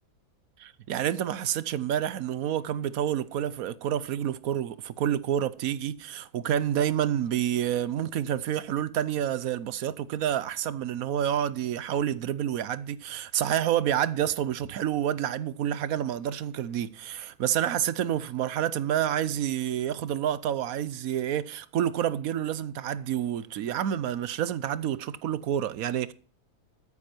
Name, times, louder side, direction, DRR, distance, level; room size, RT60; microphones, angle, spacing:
voice 1, 0.6-26.1, right 10 dB, 70° right, 1.1 m, -28 dB
13.0 x 9.9 x 4.4 m
omnidirectional pair, 1.6 m